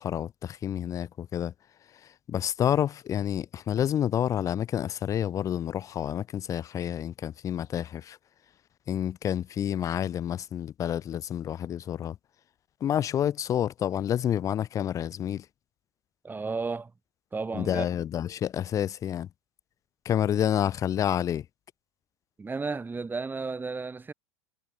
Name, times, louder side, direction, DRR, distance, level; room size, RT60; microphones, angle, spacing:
voice 1, 0.0-1.5 2.3-8.2 8.9-12.2 12.8-15.4 17.5-19.3 20.1-21.4, left 10 dB, 25° left, 0.5 m, -29 dB
voice 2, 16.2-16.9 17.3-17.9 22.4-24.1, right 4 dB, 15° right, 7.9 m, -33 dB
figure-of-eight pair, 85°, 14 cm